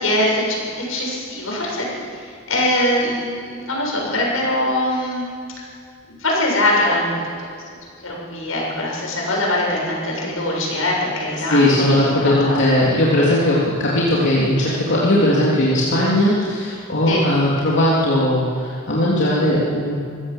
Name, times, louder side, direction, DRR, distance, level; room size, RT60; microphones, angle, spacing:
voice 1, 0.0-5.2 6.1-7.1 8.0-11.8 12.4-12.6 17.1-17.3, left 1 dB, 85° left, -2 dB, 7.6 m, -22 dB
voice 2, 11.5-20.0, left 1 dB, 60° left, -7 dB, 3.5 m, -18 dB
25.0 x 16.0 x 7.6 m, 2.1 s
head